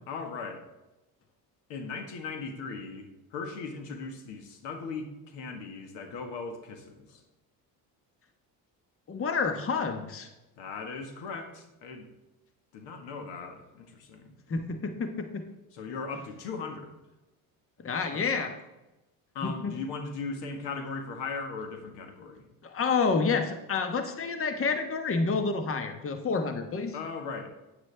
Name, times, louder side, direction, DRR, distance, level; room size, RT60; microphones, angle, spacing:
voice 1, 0.1-0.7 1.7-3.1 3.3-7.2 10.6-12.1 12.7-14.3 15.7-16.9 18.1-18.2 19.3-22.5 26.9-27.5, left 4 dB, 75° left, 6 dB, 1.7 m, -38 dB
voice 2, 9.1-10.3 14.5-15.4 17.8-18.5 19.4-19.7 22.6-26.9, left 4 dB, 30° left, 7 dB, 1.2 m, -29 dB
9.5 x 9.4 x 3.4 m, 1.0 s
supercardioid pair, 80°, 43 cm